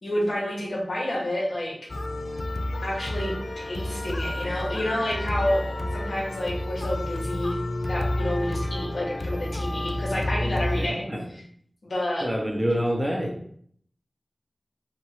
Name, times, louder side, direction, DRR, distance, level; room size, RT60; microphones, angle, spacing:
voice 1, 0.0-1.8 2.8-5.6 5.9-7.6 7.9-11.4 11.8-12.3, left 1 dB, 75° left, -4 dB, 1.8 m, -29 dB
sound 1, 1.9-10.9, left 1 dB, 60° left, 0.4 m, -30 dB
voice 2, 10.7-11.3 12.2-13.4, equal, 15° right, 1 dB, 0.8 m, -27 dB
5.6 x 2.6 x 3.1 m, 0.62 s
wide cardioid pair, 70°, 0 cm